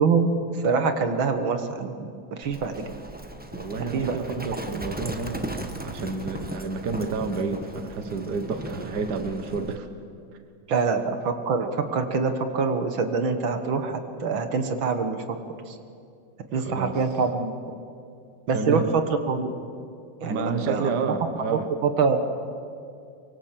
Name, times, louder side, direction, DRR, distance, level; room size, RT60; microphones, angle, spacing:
voice 1, 0.0-1.9 2.3-2.8 3.9-4.4 4.7-4.8 10.7-15.4 15.7-15.8 16.5-17.5 18.5-19.0 19.3-19.5 20.2-20.9 21.8-22.2, right 4 dB, 80° right, 7 dB, 2.3 m, -25 dB
Livestock farm animals working animals, 2.4-9.8, right 1 dB, 5° right, 1.2 m, -37 dB
voice 2, 3.5-9.9 16.5-17.0 18.5-18.9 20.2-21.7, right 4 dB, 55° right, 7 dB, 1.9 m, -30 dB
24.5 x 24.0 x 7.6 m, 2.4 s
omnidirectional pair, 2.1 m